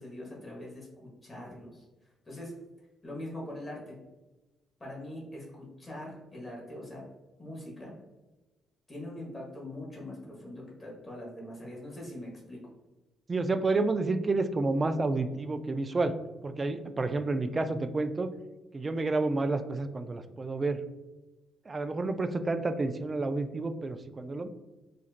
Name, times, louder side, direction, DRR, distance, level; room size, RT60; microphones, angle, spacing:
voice 1, 0.0-1.8 2.2-2.5 3.0-4.0 4.8-7.0 7.4-7.9 8.9-12.6, left 1 dB, 20° left, -3 dB, 1.4 m, -42 dB
voice 2, 13.3-16.2 16.4-18.3 18.7-20.8 21.7-24.5, right 3 dB, 30° right, 9 dB, 0.3 m, -30 dB
4.1 x 2.6 x 2.5 m, 1.1 s
cardioid pair, 90°, 0 cm